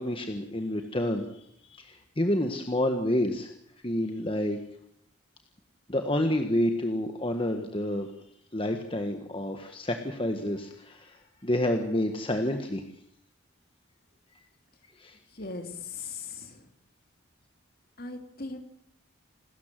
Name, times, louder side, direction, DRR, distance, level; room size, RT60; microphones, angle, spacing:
voice 1, 0.0-1.4 1.7-3.5 3.8-4.6 5.9-8.1 8.5-12.8 15.0-15.2, left 1 dB, 25° left, 5 dB, 1.6 m, -29 dB
voice 2, 15.3-16.6 18.0-18.6, left 4 dB, 50° left, 6 dB, 3.2 m, -39 dB
28.5 x 13.5 x 7.7 m, 0.71 s
head